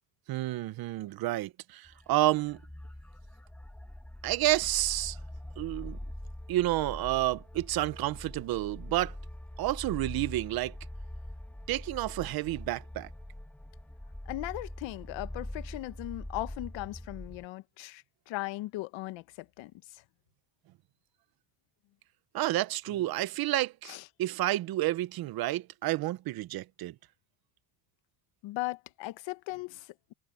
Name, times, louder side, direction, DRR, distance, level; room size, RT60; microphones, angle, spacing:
voice 1, 0.3-2.6 4.2-5.2 5.6-6.0 6.5-9.2 9.6-10.8 11.7-13.1 22.3-26.9, right 16 dB, 45° right, 0.8 m, -30 dB
sound 1, 1.9-17.5, left 1 dB, 5° left, 1.4 m, -43 dB
voice 2, 14.3-20.0 22.9-23.1 23.8-24.1 28.4-30.1, left 18 dB, 60° left, 1.4 m, -38 dB
cardioid pair, 135°, 50 cm